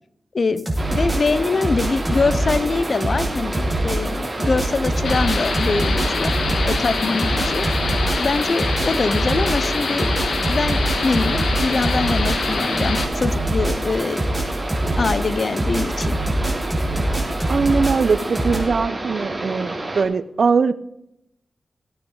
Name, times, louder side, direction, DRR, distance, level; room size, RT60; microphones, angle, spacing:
sound 1, 0.6-18.6, right 1 dB, ahead, 5.1 m, -24 dB
sound 2, 0.8-20.0, right 2 dB, 30° right, 3.0 m, -29 dB
voice 1, 0.9-6.3 6.6-7.7 8.2-10.1 10.5-14.2 15.0-16.2, left 4 dB, 55° left, 15 dB, 0.7 m, -23 dB
sound 3, 5.0-13.0, left 4 dB, 80° left, 1.6 m, -26 dB
voice 2, 17.5-20.7, right 5 dB, 70° right, 15 dB, 0.7 m, -20 dB
17.5 x 9.3 x 3.9 m, 0.82 s
cardioid pair, 60°, 0 cm